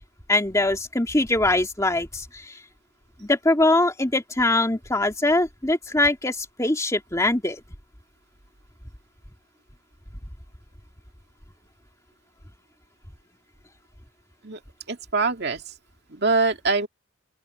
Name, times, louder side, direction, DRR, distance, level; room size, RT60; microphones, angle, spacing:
voice 1, 0.3-2.2 3.2-7.6, left 2 dB, 15° left, 2.4 m, -22 dB
voice 2, 14.9-15.6 16.1-16.9, right 3 dB, 55° right, 2.4 m, -23 dB
open air
head